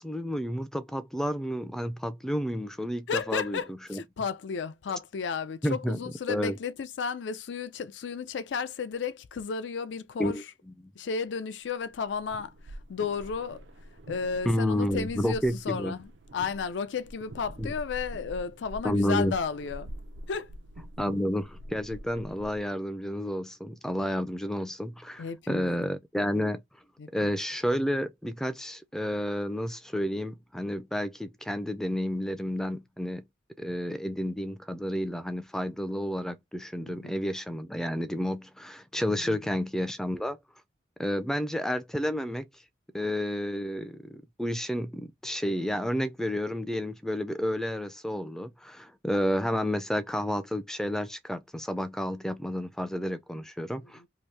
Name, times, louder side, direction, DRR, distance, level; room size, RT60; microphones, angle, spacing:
voice 1, 0.0-4.0 5.6-6.0 6.3-6.5 10.2-10.4 10.8-10.9 14.5-16.0 17.6-17.7 18.8-19.4 21.0-26.6 27.1-33.3 33.6-40.4 41.0-42.5 42.9-54.0, equal, 5° left, 0.3 m, -31 dB
voice 2, 3.1-10.4 11.0-13.6 14.1-19.9 20.3-20.5 25.2-25.7 27.0-27.3 36.9-37.1 39.1-39.4 54.0-54.1, left 5 dB, 80° left, 0.4 m, -33 dB
sound 1, 11.9-22.7, right 1 dB, 90° right, 0.5 m, -45 dB
2.8 x 2.6 x 3.3 m
head